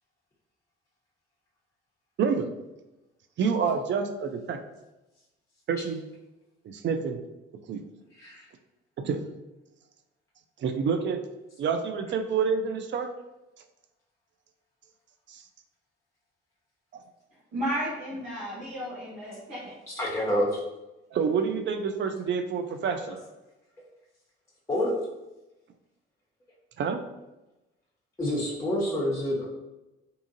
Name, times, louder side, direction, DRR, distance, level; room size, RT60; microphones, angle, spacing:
voice 1, 3.4-4.6 5.7-6.0 6.6-7.2 7.7-7.8 9.0-9.2 10.6-11.2 11.6-13.1 15.3-15.4 16.9-17.0 21.1-23.2 26.8-27.0, right 6 dB, 40° right, 7 dB, 0.4 m, -28 dB
voice 2, 17.5-19.7, equal, 70° right, -10 dB, 1.0 m, -33 dB
voice 3, 19.9-20.6 23.0-23.1 24.7-24.9 28.2-29.5, equal, 10° left, -5 dB, 0.8 m, -28 dB
2.6 x 2.4 x 2.7 m, 1.0 s
hypercardioid pair, 45°, 29 cm